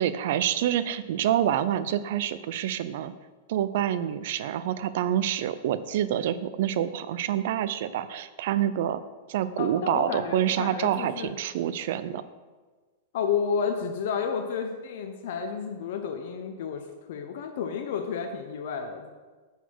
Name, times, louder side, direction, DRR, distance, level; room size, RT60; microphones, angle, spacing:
voice 1, 0.0-3.1 3.5-9.0 9.3-12.2, right 11 dB, 50° right, 14 dB, 0.4 m, -27 dB
voice 2, 9.6-11.3 13.1-19.1, left 6 dB, 55° left, 5 dB, 0.6 m, -31 dB
7.0 x 4.0 x 6.1 m, 1.4 s
supercardioid pair, 175°, 0 cm